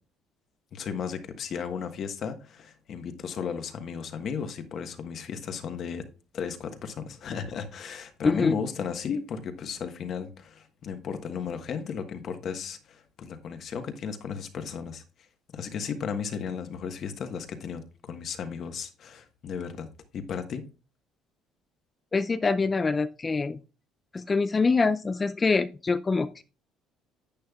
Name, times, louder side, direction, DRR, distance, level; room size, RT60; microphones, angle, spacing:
voice 1, 0.7-6.1 6.3-15.0 15.5-19.9 20.1-20.6, left 6 dB, 50° left, 1.3 m, -35 dB
voice 2, 8.2-8.6 22.1-23.6 24.1-26.4, left 4 dB, 20° left, 0.4 m, -25 dB
10.5 x 8.8 x 2.4 m
cardioid pair, 125°, 0 cm